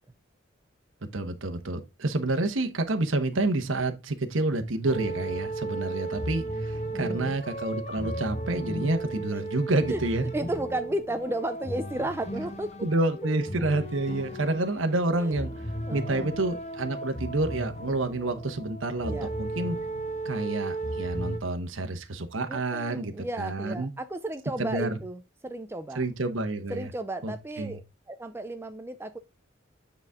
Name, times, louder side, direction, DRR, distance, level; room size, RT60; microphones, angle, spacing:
voice 1, 1.1-10.3 12.8-15.5 15.9-19.8 20.2-23.9 24.6-24.9 25.9-26.9 27.2-27.8, right 2 dB, 70° right, 1.1 m, -29 dB
sound 1, 4.9-21.4, right 1 dB, 35° left, 1.0 m, -35 dB
voice 2, 6.9-7.4 9.9-10.0 10.3-12.7 15.1-15.4 15.9-16.4 19.0-19.3 22.5-26.0 26.7-29.2, right 1 dB, 10° right, 0.4 m, -34 dB
9.0 x 4.2 x 3.5 m
head